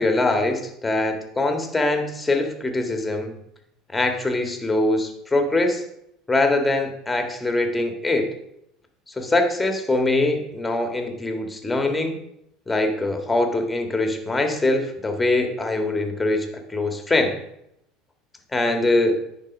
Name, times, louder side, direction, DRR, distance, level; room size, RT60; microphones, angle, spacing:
voice 1, 0.0-3.3 3.9-5.8 6.3-8.3 9.1-12.2 12.7-17.4 18.5-19.2, left 2 dB, 15° left, 5 dB, 1.8 m, -23 dB
9.9 x 4.5 x 5.4 m, 0.78 s
hypercardioid pair, 75°, 0 cm